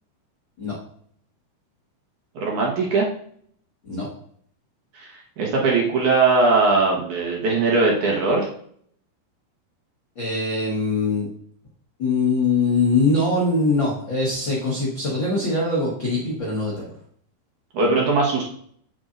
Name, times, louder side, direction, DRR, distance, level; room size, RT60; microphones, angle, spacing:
voice 1, 2.4-3.1 5.0-5.1 5.4-8.5 17.7-18.4, right 3 dB, 60° right, -2 dB, 2.3 m, -20 dB
voice 2, 10.1-11.3 12.0-16.9, left 3 dB, 80° left, -5 dB, 1.0 m, -22 dB
8.3 x 7.8 x 2.6 m, 0.63 s
omnidirectional pair, 4.7 m